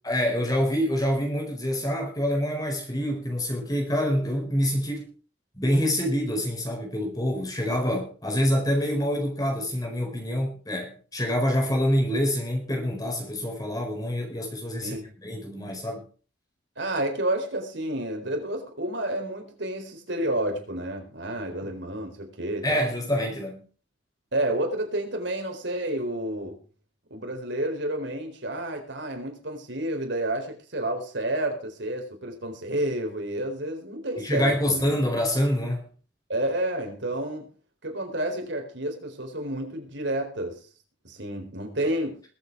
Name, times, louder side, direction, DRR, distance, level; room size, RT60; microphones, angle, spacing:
voice 1, 0.0-5.1 5.6-16.1 22.6-23.7 34.2-35.9, equal, 20° left, 4.4 m, -26 dB
voice 2, 16.8-22.9 24.3-26.6 27.1-34.9 36.3-37.5 37.8-40.6 41.0-42.2, right 1 dB, 75° right, 4.3 m, -30 dB
21.5 x 8.2 x 4.8 m
head